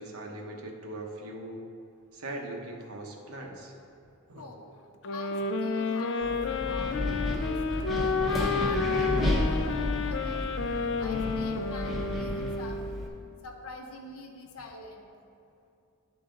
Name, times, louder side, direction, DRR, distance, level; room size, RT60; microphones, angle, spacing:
voice 1, 0.0-1.6 2.1-3.7 4.3-4.4, right 1 dB, 75° right, 1 dB, 0.9 m, -40 dB
voice 2, 4.4-4.8 5.1-10.5 10.9-12.8 13.1-15.1, left 2 dB, 75° left, 2 dB, 0.8 m, -45 dB
sound 1, 5.0-13.0, left 4 dB, 55° left, 0.4 m, -30 dB
Wind, 6.2-13.1, left 1 dB, ahead, 0.8 m, -32 dB
11.5 x 4.0 x 3.8 m, 2.6 s
head